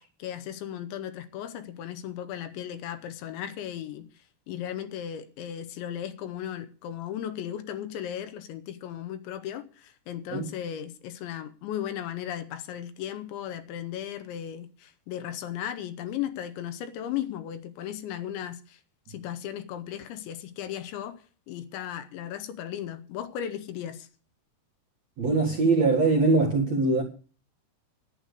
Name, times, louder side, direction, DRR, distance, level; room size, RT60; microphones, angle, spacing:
voice 1, 0.0-18.8 19.1-24.1, left 10 dB, 75° left, 3.0 m, -36 dB
voice 2, 25.2-27.0, right 3 dB, 55° right, 2.0 m, -22 dB
11.0 x 9.9 x 6.7 m
omnidirectional pair, 5.6 m